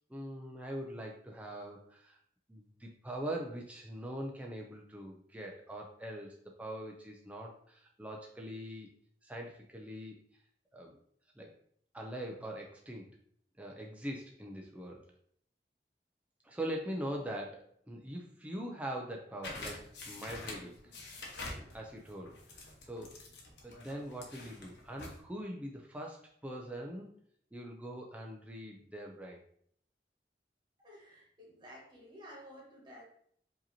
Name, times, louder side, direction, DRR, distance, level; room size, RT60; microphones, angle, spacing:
voice 1, 0.1-2.2 2.5-8.9 9.2-10.2 10.7-11.0 11.4-11.5 11.9-13.1 13.6-15.0 16.4-23.2 23.6-27.1 27.5-29.4, right 1 dB, 10° right, 0 dB, 0.4 m, -42 dB
sound 1, 19.4-25.2, left 2 dB, 80° left, 1.0 m, -47 dB
voice 2, 30.8-33.0, equal, 25° right, -3 dB, 1.2 m, -52 dB
5.0 x 2.8 x 2.7 m, 0.64 s
head